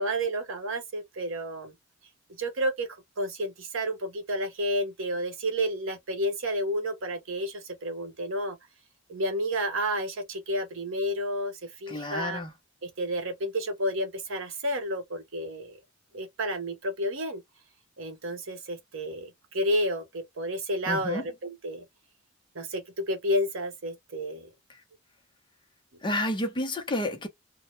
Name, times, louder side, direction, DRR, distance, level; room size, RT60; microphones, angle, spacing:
voice 1, 0.0-1.7 2.4-2.9 3.2-8.6 9.1-12.4 12.8-15.8 16.1-17.4 18.0-21.8 22.5-24.5, equal, 70° right, 0.8 m, -31 dB
voice 2, 11.9-12.5 20.9-21.3 24.7-24.8 26.0-27.3, left 1 dB, 25° left, 0.6 m, -30 dB
2.2 x 2.1 x 3.0 m
head